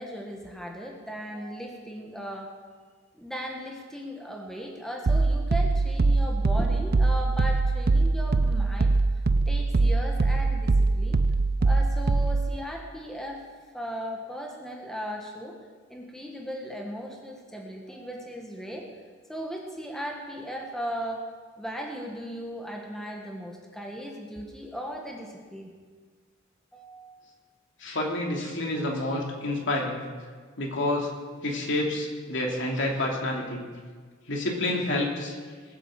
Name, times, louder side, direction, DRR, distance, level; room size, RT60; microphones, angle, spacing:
voice 1, 0.0-2.5 3.1-9.0 9.5-11.2 11.6-13.4 13.7-15.6 15.9-18.9 19.3-21.3 21.6-25.7 26.7-27.2, equal, ahead, 0 dB, 1.5 m, -37 dB
sound 1, 5.1-12.6, right 3 dB, 50° right, 0.5 m, -23 dB
voice 2, 27.8-30.0 30.6-31.1 31.4-33.7 34.3-35.4, left 1 dB, 60° left, 0 dB, 2.8 m, -28 dB
20.5 x 8.2 x 7.6 m, 1.5 s
head